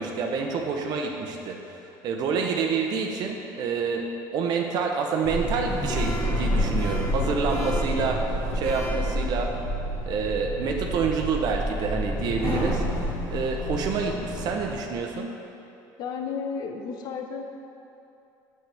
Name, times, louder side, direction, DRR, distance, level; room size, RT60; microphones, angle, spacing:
voice 1, 0.0-1.8 2.0-4.0 4.3-8.2 8.5-9.5 10.1-15.3, right 5 dB, 55° right, 2 dB, 0.7 m, -28 dB
Sliding door, 5.2-14.8, equal, 30° left, 1.4 m, -28 dB
voice 2, 16.0-17.4, left 5 dB, 55° left, 4 dB, 0.8 m, -32 dB
8.2 x 7.6 x 3.4 m, 2.7 s
cardioid pair, 145°, 9 cm